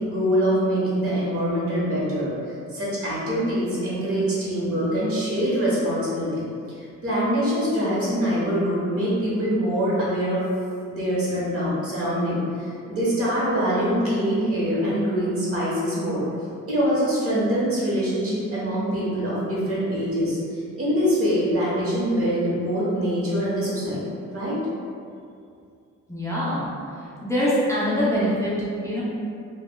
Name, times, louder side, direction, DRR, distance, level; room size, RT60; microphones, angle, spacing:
voice 1, 0.0-2.3 2.7-6.4 6.8-10.4 10.9-16.2 16.7-24.0 24.3-24.6, equal, 50° right, -7 dB, 1.1 m, -24 dB
voice 2, 26.1-26.7 27.2-28.5 28.8-29.0, equal, 10° left, -9 dB, 0.5 m, -23 dB
3.2 x 2.3 x 2.2 m, 2.4 s
cardioid pair, 90°, 30 cm